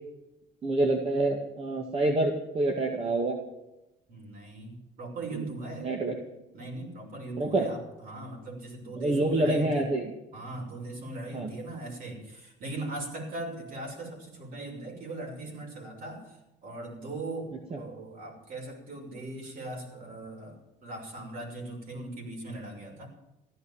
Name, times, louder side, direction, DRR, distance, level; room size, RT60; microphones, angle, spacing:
voice 1, 0.6-3.4 5.3-5.4 5.8-6.2 7.4-7.7 9.0-10.1 11.3-11.5 17.7-17.8, right 2 dB, 35° right, 2 dB, 2.1 m, -27 dB
voice 2, 4.1-5.9 6.5-9.9 10.3-23.1, right 2 dB, 60° right, 0 dB, 6.3 m, -39 dB
15.0 x 12.0 x 7.3 m, 0.92 s
cardioid pair, 110°, 17 cm